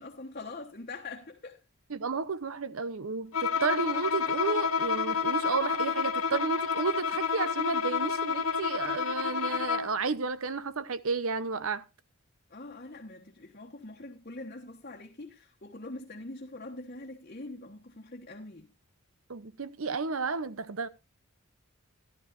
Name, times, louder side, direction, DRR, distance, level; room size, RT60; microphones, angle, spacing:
voice 1, 0.0-1.6 12.5-18.7, left 2 dB, 40° left, 1.2 m, -43 dB
voice 2, 1.9-11.8 19.3-20.9, right 4 dB, 70° right, 0.8 m, -32 dB
Bowed string instrument, 3.3-10.0, left 6 dB, 80° left, 1.3 m, -29 dB
13.5 x 12.0 x 2.6 m
head